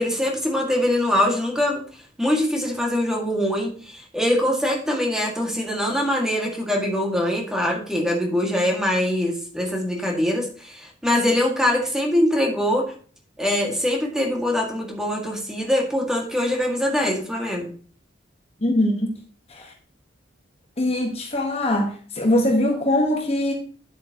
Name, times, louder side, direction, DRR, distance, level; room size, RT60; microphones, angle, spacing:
voice 1, 0.0-1.8 2.2-12.9 13.4-17.7, left 1 dB, 5° right, 2.0 m, -23 dB
voice 2, 18.6-19.1 20.8-23.5, left 1 dB, 35° left, 1.4 m, -21 dB
10.0 x 8.2 x 3.0 m
head